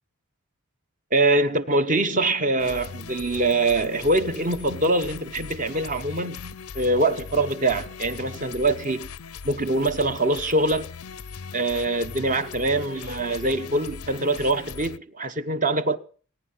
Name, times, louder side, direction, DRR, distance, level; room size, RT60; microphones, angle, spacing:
voice 1, 1.1-9.1 9.4-10.9 11.5-16.0, right 2 dB, 35° right, 1.0 m, -24 dB
sound 1, 2.6-15.0, left 6 dB, 85° left, 0.6 m, -39 dB
20.0 x 10.5 x 5.7 m
head